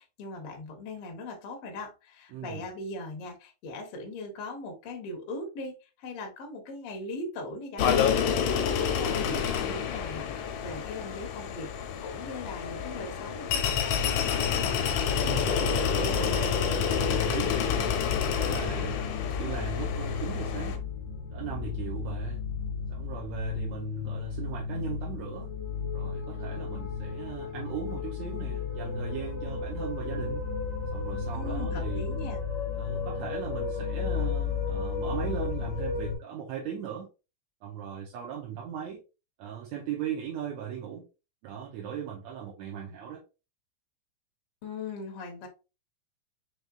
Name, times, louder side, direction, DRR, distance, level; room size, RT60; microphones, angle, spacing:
voice 1, 0.0-11.7 12.0-14.9 31.3-32.4 44.6-45.5, left 2 dB, 70° left, 1.5 m, -40 dB
voice 2, 2.3-2.6 15.2-15.6 15.9-16.6 17.0-17.9 18.2-19.1 19.4-20.8 21.3-22.4 22.9-25.5 25.9-30.4 30.9-32.0 32.8-37.1 37.6-39.0 39.4-41.0 41.4-43.2, right 9 dB, 70° right, 1.9 m, -38 dB
sound 1, 7.8-20.8, left 7 dB, 85° left, 2.3 m, -28 dB
sound 2, 16.9-36.1, left 5 dB, 30° left, 0.7 m, -33 dB
5.5 x 3.2 x 2.3 m
omnidirectional pair, 3.6 m